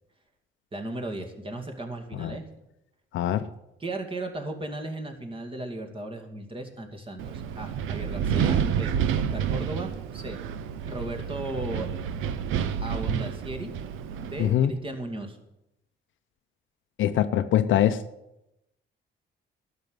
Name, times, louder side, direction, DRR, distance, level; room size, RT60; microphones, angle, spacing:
voice 1, 0.7-2.5 3.8-10.4 10.9-11.9 12.8-13.7 14.2-15.4, right 1 dB, 25° right, 4 dB, 2.4 m, -36 dB
voice 2, 3.1-3.5 14.4-14.7 17.0-18.0, left 11 dB, 75° left, 9 dB, 0.7 m, -23 dB
Wind, 7.2-14.5, right 8 dB, 90° right, 0.7 m, -29 dB
12.0 x 6.6 x 9.6 m, 0.87 s
cardioid pair, 90°, 20 cm